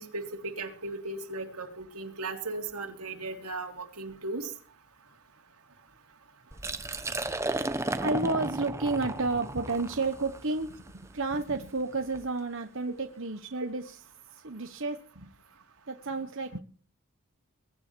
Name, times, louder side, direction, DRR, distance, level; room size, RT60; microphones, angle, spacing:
voice 1, 0.0-4.5, right 3 dB, 85° right, 4 dB, 3.4 m, -37 dB
Liquid, 6.5-12.3, right 2 dB, 10° right, 0.9 m, -35 dB
voice 2, 8.0-10.8 11.1-14.0 14.3-15.3 15.9-16.6, right 3 dB, 55° right, 6 dB, 1.2 m, -31 dB
22.5 x 10.0 x 4.6 m, 0.43 s
head